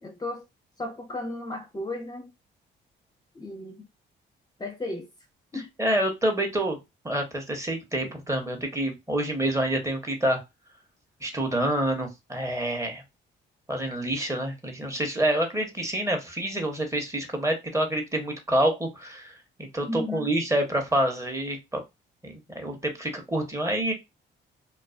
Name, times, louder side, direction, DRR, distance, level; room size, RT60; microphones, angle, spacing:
voice 1, 0.0-0.4 0.8-2.3 3.3-3.8 4.6-5.1 5.5-5.7 19.8-20.3, left 2 dB, 20° left, 0.5 m, -34 dB
voice 2, 5.8-6.8 7.0-10.4 11.2-13.0 13.7-21.8 22.2-23.9, right 1 dB, 15° right, 0.7 m, -27 dB
2.4 x 2.3 x 2.3 m
cardioid pair, 90°, 20 cm